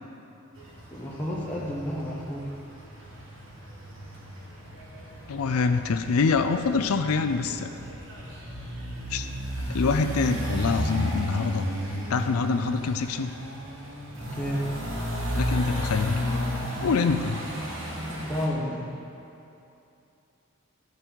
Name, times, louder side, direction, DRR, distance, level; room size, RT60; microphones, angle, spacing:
sound 1, 0.6-18.5, equal, 65° right, 1.4 m, -33 dB
voice 1, 0.9-2.5 14.4-14.7 18.1-18.9, equal, 10° left, -7 dB, 1.0 m, -31 dB
voice 2, 5.3-7.7 9.1-9.3 9.7-11.7 12.1-13.3 15.3-16.2 16.8-17.4, left 4 dB, 85° left, 8 dB, 0.4 m, -25 dB
12.5 x 5.3 x 4.5 m, 2.8 s
head